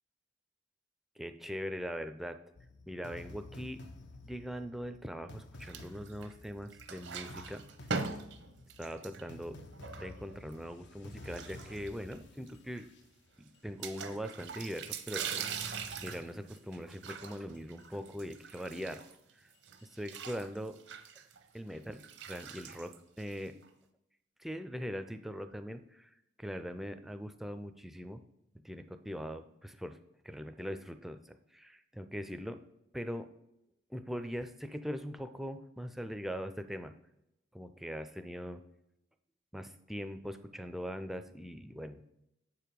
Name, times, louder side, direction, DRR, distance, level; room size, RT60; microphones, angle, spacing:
voice 1, 1.2-2.4 2.9-3.8 4.2-7.6 8.8-9.6 10.0-12.9 13.4-15.5 16.0-19.0 19.4-19.5 19.8-20.8 21.5-23.5 24.4-28.2 28.6-30.0 30.2-32.6 32.9-33.3 33.9-36.9 37.5-38.6 39.5-42.0, equal, ahead, 8 dB, 0.4 m, -41 dB
sound 1, 2.5-13.8 14.5-14.6 15.5-16.8 17.5-17.8 18.5-18.6 19.5-19.8 20.5-20.6, left 2 dB, 75° left, 0.7 m, -53 dB
sound 2, 5.6-6.4 6.7-10.5 11.2-12.2 12.5-12.6 12.7-12.8 13.8-19.3 19.6-23.6, right 5 dB, 85° right, 0.8 m, -42 dB
7.4 x 4.7 x 5.1 m, 0.84 s
head